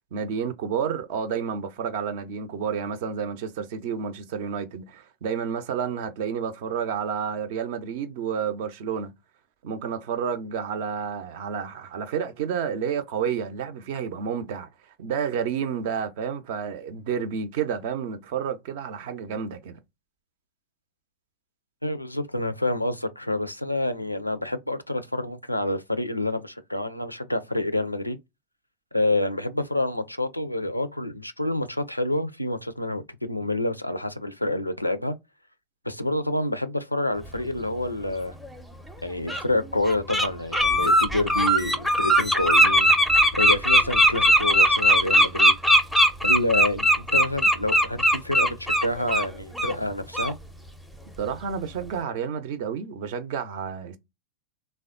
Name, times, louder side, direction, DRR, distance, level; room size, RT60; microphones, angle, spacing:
voice 1, 0.1-9.1 9.6-14.7 15.0-19.7 51.2-54.0, right 7 dB, 50° right, 0.5 m, -30 dB
voice 2, 21.8-28.2 28.9-35.1 35.8-38.3 39.0-42.9 43.3-45.6 46.2-50.4, left 1 dB, 85° left, 0.4 m, -28 dB
Bird, 38.4-38.5 39.3-39.4 39.9-40.3 40.5-49.3 49.6-49.7 50.1-50.3, equal, ahead, 0.5 m, -19 dB
3.4 x 2.2 x 2.4 m
figure-of-eight pair, 90°, 0 cm